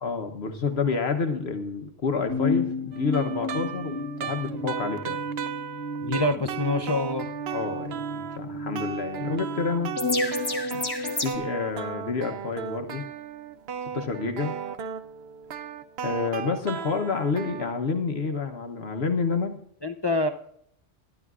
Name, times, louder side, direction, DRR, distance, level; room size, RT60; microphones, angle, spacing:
voice 1, 0.0-5.3 7.5-9.9 10.7-10.8 11.2-13.0 13.9-14.5 16.0-19.6, left 4 dB, 60° left, 5 dB, 1.1 m, -29 dB
sound 1, 2.3-11.3, left 2 dB, 20° left, 1.1 m, -31 dB
sound 2, 2.9-8.4 8.7-17.7, right 8 dB, 65° right, 0.8 m, -36 dB
voice 2, 6.0-7.3 19.8-20.3, left 2 dB, 40° left, 7 dB, 0.4 m, -26 dB
21.5 x 11.0 x 2.4 m, 0.68 s
omnidirectional pair, 1.2 m